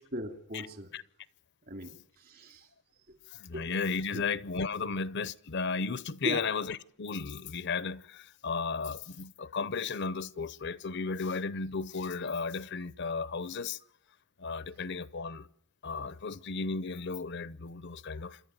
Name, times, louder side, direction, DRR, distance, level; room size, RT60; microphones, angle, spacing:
voice 1, 0.1-0.9 1.7-2.7 3.5-3.7 4.1-4.2 6.2-6.5, equal, 45° right, 3.1 m, -38 dB
voice 2, 3.3-13.8 14.4-15.5 15.8-18.4, left 4 dB, 55° left, 0.7 m, -34 dB
27.5 x 11.0 x 9.4 m
head